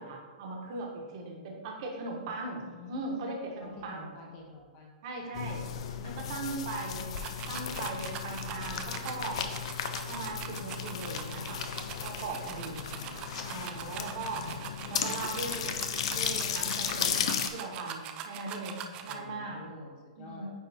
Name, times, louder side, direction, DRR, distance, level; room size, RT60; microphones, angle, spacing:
voice 1, 0.0-4.0 5.0-5.6 6.0-7.2 7.5-9.4 10.1-11.6 12.0-12.8 13.5-14.4 14.9-15.8 16.1-19.6 20.2-20.5, right 3 dB, 40° right, 0 dB, 1.2 m, -39 dB
voice 2, 2.6-3.1 3.6-5.4 12.9-13.2 14.3-14.5 19.1-20.5, left 2 dB, 25° left, 0 dB, 1.1 m, -48 dB
sound 1, 5.3-17.5, left 8 dB, 50° left, 0.5 m, -35 dB
sound 2, 7.1-19.2, right 9 dB, 20° right, 0.3 m, -43 dB
9.3 x 3.6 x 3.5 m, 1.5 s
hypercardioid pair, 165°, 4 cm